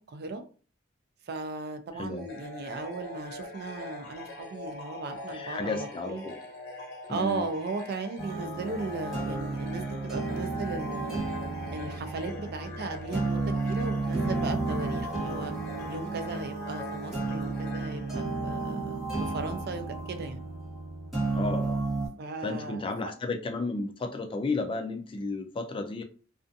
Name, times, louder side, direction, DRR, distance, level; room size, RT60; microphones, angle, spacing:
voice 1, 0.1-0.4 1.3-6.2 7.1-11.2 11.7-15.5 15.9-20.4 22.2-22.9, right 3 dB, 50° right, 7 dB, 0.4 m, -36 dB
voice 2, 1.9-2.3 5.3-6.4 7.1-7.5 21.3-21.8 22.4-26.0, left 3 dB, 25° left, 5 dB, 0.3 m, -33 dB
sound 1, 2.2-18.9, left 2 dB, 55° left, 1.0 m, -43 dB
sound 2, 8.2-22.1, right 3 dB, ahead, 1.0 m, -32 dB
2.4 x 2.4 x 2.5 m, 0.39 s
head